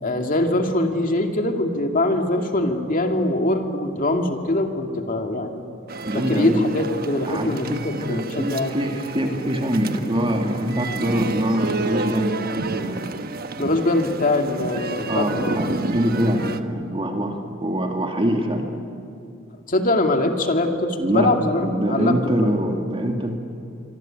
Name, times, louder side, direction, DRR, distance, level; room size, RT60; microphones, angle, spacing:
voice 1, 0.0-5.7 6.1-8.7 13.6-15.6 19.7-22.1, left 2 dB, 45° left, 4 dB, 2.5 m, -23 dB
sound 1, 5.9-16.6, right 3 dB, 50° right, 1.2 m, -30 dB
voice 2, 6.0-6.7 7.3-13.1 15.1-18.7 21.0-21.3 21.6-23.4, equal, 30° right, 3 dB, 2.3 m, -24 dB
25.5 x 25.0 x 9.0 m, 2.5 s
head